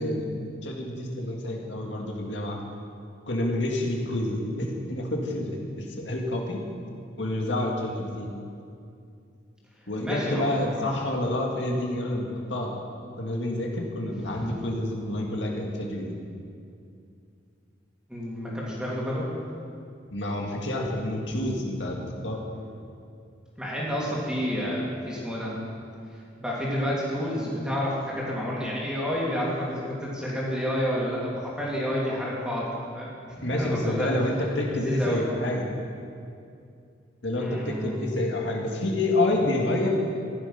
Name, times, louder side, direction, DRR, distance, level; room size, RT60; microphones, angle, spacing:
voice 1, 0.0-2.6 3.3-6.6 7.2-8.3 9.9-12.8 13.2-16.2 20.1-22.0 22.2-22.4 33.4-35.6 37.2-39.9, left 1 dB, 70° left, -1 dB, 2.1 m, -28 dB
voice 2, 10.0-10.9 14.1-14.7 18.1-19.3 23.6-25.5 26.1-33.1 33.4-34.1 34.7-35.3 37.4-38.1, equal, 5° right, -6 dB, 2.9 m, -30 dB
15.0 x 11.5 x 5.8 m, 2.4 s
head